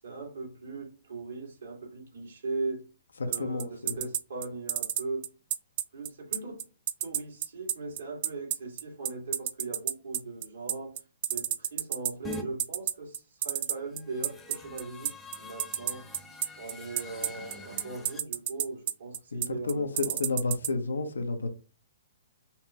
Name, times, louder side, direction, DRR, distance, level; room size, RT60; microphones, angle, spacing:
voice 1, 0.0-2.9 3.3-5.3 5.9-6.7 7.0-11.0 11.3-16.1 16.6-20.2, right 3 dB, 75° right, 2.1 m, -39 dB
voice 2, 3.2-4.0 19.3-21.5, left 3 dB, 90° left, 0.8 m, -31 dB
sound 1, 3.3-20.7, right 11 dB, 45° right, 0.5 m, -30 dB
sound 2, 12.2-12.4 13.8-18.2, left 3 dB, 10° left, 0.8 m, -45 dB
5.6 x 2.2 x 2.9 m
hypercardioid pair, 135°, 0 cm